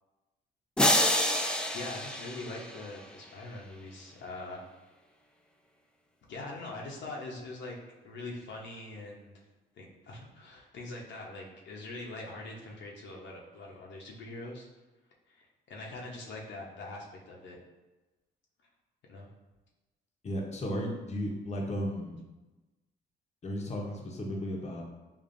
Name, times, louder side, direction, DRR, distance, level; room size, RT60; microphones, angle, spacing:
sound 1, 0.8-3.1, left 1 dB, 5° left, 0.3 m, -28 dB
voice 1, 1.7-4.7 6.3-7.8 8.0-9.4 9.7-14.7 15.3-17.6 19.1-19.3, left 2 dB, 65° left, -2 dB, 0.7 m, -43 dB
voice 2, 20.2-22.2 23.4-24.8, equal, 35° left, -1 dB, 0.7 m, -34 dB
5.1 x 2.4 x 2.5 m, 1.1 s
cardioid pair, 90°, 20 cm